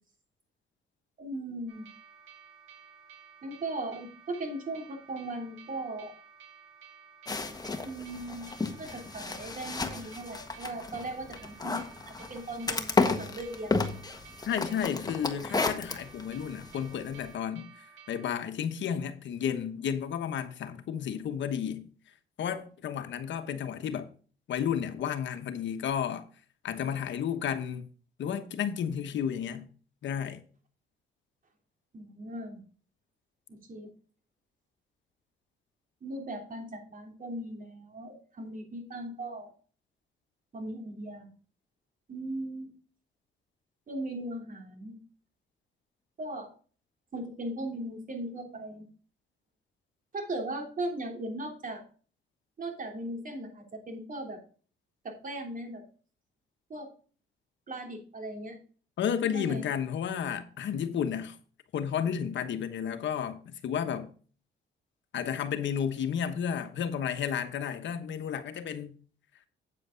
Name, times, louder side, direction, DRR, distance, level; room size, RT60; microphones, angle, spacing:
voice 1, 1.2-1.9 3.4-6.1 7.8-8.5 8.8-13.8 31.9-32.6 33.5-33.9 36.0-39.5 40.5-41.3 42.1-42.7 43.9-45.0 46.2-46.5 47.1-48.9 50.1-51.8 52.6-54.4 55.0-55.8 56.7-56.9 57.7-58.5 59.2-59.6, right 1 dB, 45° right, 3.2 m, -38 dB
sound 1, 1.7-18.4, right 7 dB, 80° right, 2.6 m, -54 dB
sound 2, 7.3-17.3, left 3 dB, 20° left, 1.4 m, -33 dB
voice 2, 14.5-17.7 18.1-21.9 22.4-24.1 24.5-26.2 26.6-27.9 28.2-29.7 30.0-30.4 59.0-61.4 61.7-64.1 65.1-68.9, left 8 dB, 65° left, 1.1 m, -32 dB
8.8 x 7.8 x 3.8 m
cardioid pair, 90°, 20 cm